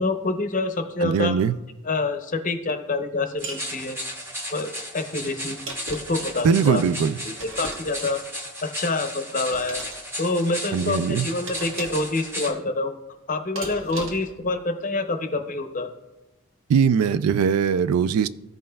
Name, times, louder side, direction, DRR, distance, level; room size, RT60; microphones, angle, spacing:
voice 1, 0.0-1.3 1.8-4.0 4.5-5.6 5.9-6.8 7.2-8.2 8.6-9.8 10.2-12.9 13.3-15.9, left 2 dB, 35° left, 0.6 m, -27 dB
voice 2, 1.0-1.6 6.4-7.2 10.7-11.3 16.7-18.3, right 6 dB, 85° right, 0.3 m, -21 dB
sound 1, 3.4-12.5, equal, 10° right, 0.9 m, -35 dB
sound 2, 3.4-3.7 5.4-6.2 7.4-8.1 9.5-10.0 11.5-12.1 13.6-14.4, right 2 dB, 65° right, 1.3 m, -37 dB
14.5 x 5.4 x 2.2 m
head